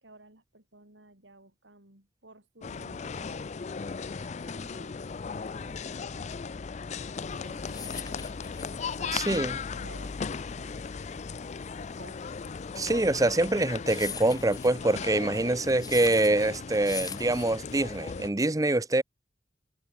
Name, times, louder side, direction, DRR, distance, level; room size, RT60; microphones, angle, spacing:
voice 1, 0.0-6.5 7.3-8.3 8.6-11.3 11.8-12.4, right 2 dB, 85° right, 5.8 m, -54 dB
sound 1, 2.6-18.3, left 5 dB, 40° left, 0.4 m, -37 dB
sound 2, 7.3-18.1, left 6 dB, 20° left, 5.2 m, -43 dB
voice 2, 9.1-9.5 12.8-19.0, right 2 dB, 20° right, 0.8 m, -25 dB
head